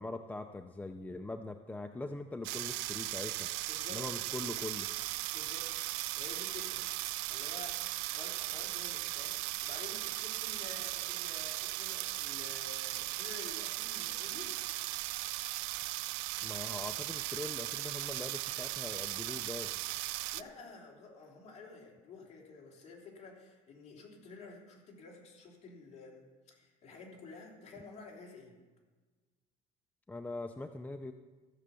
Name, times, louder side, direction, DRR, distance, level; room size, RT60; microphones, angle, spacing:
voice 1, 0.0-3.5 3.9-4.9 16.4-19.8 30.1-31.1, left 2 dB, 10° left, 7 dB, 0.4 m, -42 dB
sound 1, 2.4-20.4, right 19 dB, 90° right, 0.4 m, -37 dB
voice 2, 3.6-4.1 5.3-5.8 6.1-6.8 7.3-14.6 20.3-28.5, left 4 dB, 40° left, -1 dB, 3.3 m, -51 dB
14.5 x 7.4 x 6.9 m, 1.3 s
cardioid pair, 135°, 17 cm